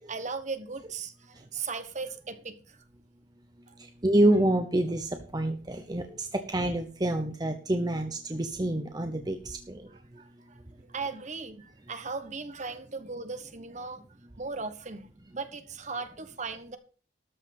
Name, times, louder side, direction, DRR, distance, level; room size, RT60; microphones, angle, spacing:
voice 1, 0.1-2.8 3.7-3.8 9.9-10.3 10.8-11.6 11.9-14.0 14.4-16.8, right 4 dB, 40° right, 10 dB, 1.1 m, -37 dB
voice 2, 3.8-9.9, right 1 dB, 20° right, 6 dB, 0.9 m, -27 dB
13.0 x 5.8 x 5.9 m, 0.39 s
head